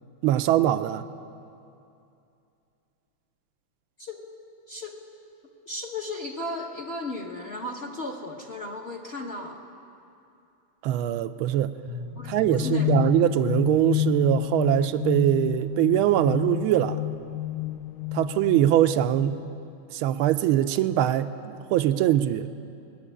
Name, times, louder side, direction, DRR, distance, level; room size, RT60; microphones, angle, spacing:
voice 1, 0.2-1.0 10.8-11.7 12.3-17.0 18.1-19.4 19.9-22.5, right 12 dB, 80° right, 9 dB, 1.4 m, -22 dB
voice 2, 4.7-5.0 5.7-9.6 12.2-13.0, left 2 dB, 45° left, 1 dB, 0.9 m, -35 dB
sound 1, 11.9-19.6, left 15 dB, 70° left, 1.1 m, -30 dB
20.5 x 7.3 x 9.9 m, 2.6 s
omnidirectional pair, 2.3 m